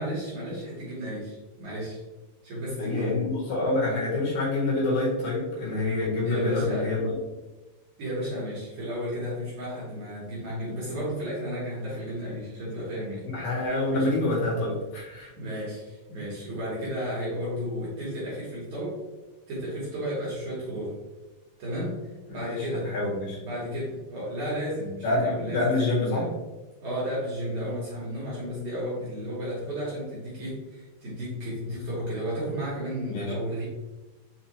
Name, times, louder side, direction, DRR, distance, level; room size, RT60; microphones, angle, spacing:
voice 1, 0.0-2.0 2.4-3.2 6.2-6.9 8.0-13.3 13.9-14.2 15.3-19.0 19.5-20.9 21.6-22.9 23.4-25.6 26.1-26.3 26.8-33.6, equal, 60° right, -8 dB, 2.1 m, -33 dB
voice 2, 2.8-7.1 13.3-15.3 22.3-23.4 25.0-26.3 33.1-33.3, left 2 dB, 65° left, -5 dB, 3.1 m, -27 dB
7.2 x 2.6 x 2.9 m, 1.1 s
omnidirectional pair, 5.0 m